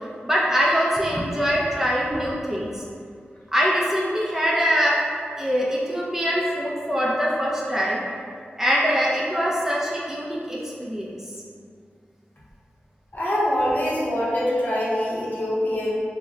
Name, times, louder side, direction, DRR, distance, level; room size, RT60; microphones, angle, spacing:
voice 1, 0.2-2.8 3.5-5.0 5.4-8.0 8.6-11.3, equal, 10° right, -5 dB, 0.4 m, -23 dB
voice 2, 13.1-16.0, left 1 dB, 50° left, -7 dB, 0.7 m, -24 dB
2.1 x 2.0 x 3.7 m, 2.3 s
wide cardioid pair, 70°, 4 cm